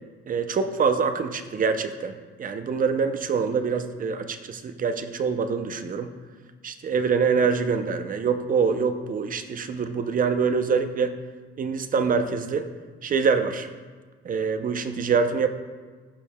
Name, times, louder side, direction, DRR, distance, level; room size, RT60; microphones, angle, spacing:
voice 1, 0.3-6.1 6.6-11.1 11.6-12.7 13.0-13.7 14.2-15.5, right 5 dB, 45° right, 9 dB, 0.5 m, -25 dB
12.5 x 4.6 x 2.2 m, 1.5 s
cardioid pair, 90°, 20 cm